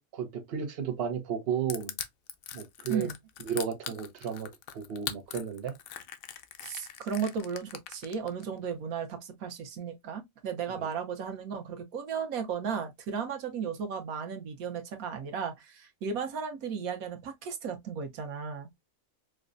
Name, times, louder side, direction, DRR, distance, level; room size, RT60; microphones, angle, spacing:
voice 1, 0.0-1.9 2.5-3.1 3.4-5.7 10.7-10.9, right 7 dB, 50° right, 0.9 m, -34 dB
Crushing, 1.7-8.4, left 10 dB, 80° left, 1.0 m, -40 dB
voice 2, 6.6-18.8, right 6 dB, 90° right, 1.3 m, -35 dB
4.8 x 2.2 x 2.4 m
omnidirectional pair, 1.4 m